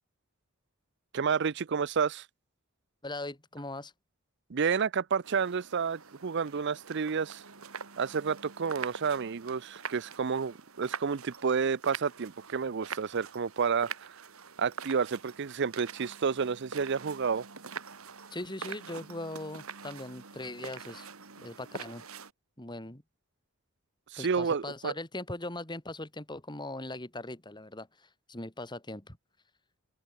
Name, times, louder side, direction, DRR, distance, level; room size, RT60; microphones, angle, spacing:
voice 1, 1.1-2.3 4.5-7.4 8.0-14.1 14.6-17.4 24.1-24.9, right 6 dB, 55° right, 0.5 m, -30 dB
voice 2, 3.0-3.9 18.3-21.1 21.4-22.0 22.6-23.0 24.2-29.2, left 2 dB, 20° left, 2.6 m, -40 dB
sound 1, 5.2-22.3, right 6 dB, 80° right, 2.1 m, -45 dB
open air
head